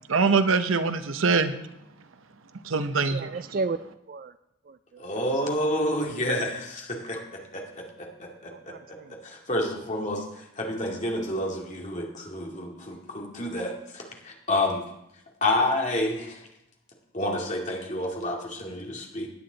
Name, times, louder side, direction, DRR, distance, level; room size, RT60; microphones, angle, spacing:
voice 1, 0.1-1.5 2.6-3.3, right 4 dB, 75° right, 10 dB, 0.8 m, -23 dB
voice 2, 3.1-3.8 4.1-4.3 4.7-5.0 5.4-5.5 8.5-9.1, right 4 dB, 45° right, 13 dB, 0.3 m, -33 dB
voice 3, 5.0-7.2 7.5-8.7 9.2-14.8 15.4-16.4 17.1-19.3, left 1 dB, 35° left, 0 dB, 2.3 m, -29 dB
16.5 x 9.5 x 4.0 m, 0.83 s
head